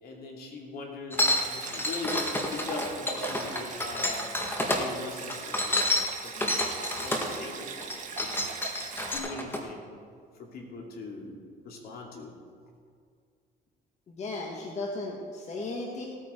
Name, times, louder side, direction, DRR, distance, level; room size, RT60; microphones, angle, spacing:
voice 1, 0.0-4.3 4.7-8.4 9.1-9.9 10.3-11.4 11.6-12.3, left 3 dB, 65° left, 0 dB, 2.7 m, -40 dB
sound 1, 1.1-4.8 5.3-7.3 7.8-9.6, left 1 dB, 15° left, 1.6 m, -29 dB
Stream, 1.2-9.2, right 6 dB, 45° right, 1.9 m, -41 dB
voice 2, 14.1-16.1, left 2 dB, 40° left, -1 dB, 1.6 m, -35 dB
17.5 x 9.1 x 4.5 m, 2.2 s
cardioid pair, 110°, 17 cm